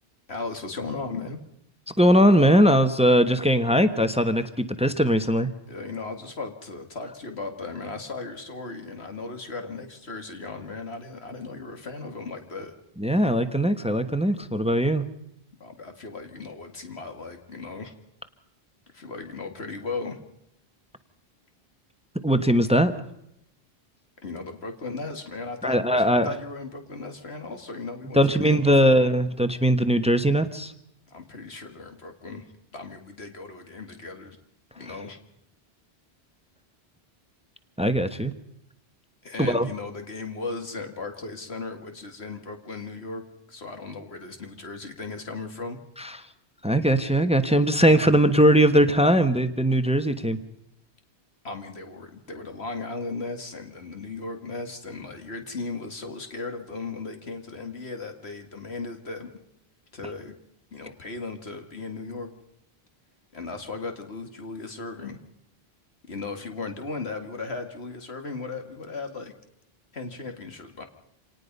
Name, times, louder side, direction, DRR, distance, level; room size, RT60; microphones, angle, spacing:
voice 1, 0.3-1.4 5.7-12.7 15.6-17.9 18.9-20.2 24.2-29.0 31.1-32.5 32.7-34.4 34.8-35.2 39.2-43.2 43.5-45.8 51.4-59.3 59.9-60.4 60.7-62.3 63.3-65.2 66.1-69.3 69.9-70.9, left 3 dB, 90° left, 5 dB, 2.5 m, -36 dB
voice 2, 2.0-5.5 13.0-15.0 22.2-22.9 25.6-26.3 28.1-30.7 37.8-38.3 39.4-39.7 46.6-50.4, equal, 5° right, 10 dB, 1.1 m, -20 dB
27.0 x 18.5 x 5.4 m, 0.79 s
omnidirectional pair, 1.0 m